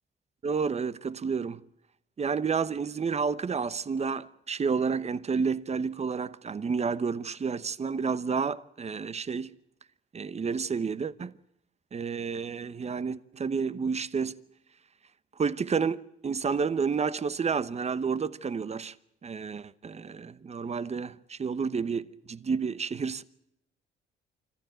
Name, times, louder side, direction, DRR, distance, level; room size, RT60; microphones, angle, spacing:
voice 1, 0.4-1.6 2.2-9.6 10.1-11.3 11.9-14.4 15.4-18.9 19.2-23.2, right 5 dB, 35° right, 1.0 m, -30 dB
26.0 x 14.5 x 9.2 m
cardioid pair, 90°, 20 cm